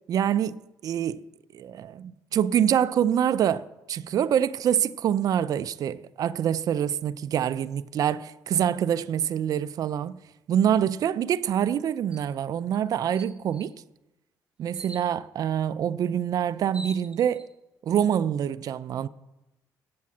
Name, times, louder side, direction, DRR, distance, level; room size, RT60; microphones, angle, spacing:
voice 1, 0.1-1.2 1.5-10.2 10.5-13.7 14.6-17.5 17.9-19.1, right 9 dB, 55° right, 0.4 m, -25 dB
sound 1, 12.1-12.3 12.7-12.8 13.2-13.7 14.7-15.1 16.2-16.3 16.6-17.5, right 2 dB, 15° right, 1.0 m, -44 dB
8.5 x 7.5 x 7.2 m
cardioid pair, 80°, 7 cm